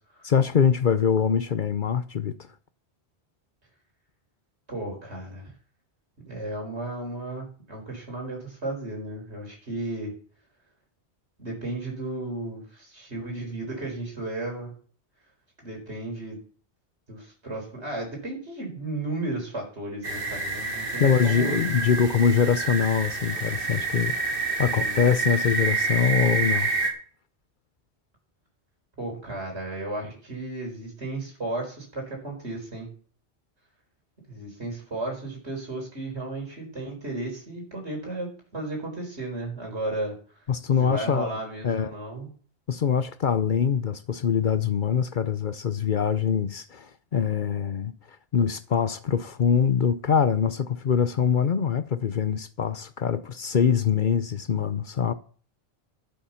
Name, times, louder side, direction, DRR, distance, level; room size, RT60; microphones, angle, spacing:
voice 1, 0.2-2.3 21.0-24.2 24.6-26.7 40.5-41.4 41.6-41.9 42.7-47.9 48.3-55.1, left 7 dB, 50° left, 0.8 m, -23 dB
voice 2, 4.7-5.5 6.3-10.2 11.4-14.8 15.6-16.4 17.1-21.6 24.6-25.0 29.0-32.9 34.3-40.2 40.8-42.3, right 2 dB, 80° right, 4.8 m, -34 dB
sound 1, 20.0-26.9, right 3 dB, 55° right, 2.1 m, -28 dB
12.0 x 8.5 x 5.8 m
omnidirectional pair, 1.1 m